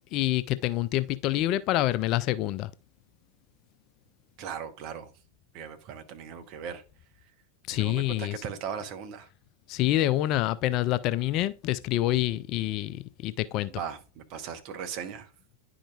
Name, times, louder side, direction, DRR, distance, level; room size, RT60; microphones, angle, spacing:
voice 1, 0.1-2.7 7.7-8.3 9.7-13.7, left 15 dB, 40° left, 0.3 m, -27 dB
voice 2, 4.4-5.1 5.5-6.8 7.7-9.3 13.7-15.3, right 7 dB, 40° right, 1.0 m, -38 dB
10.0 x 5.0 x 2.4 m
figure-of-eight pair, 90°, 0 cm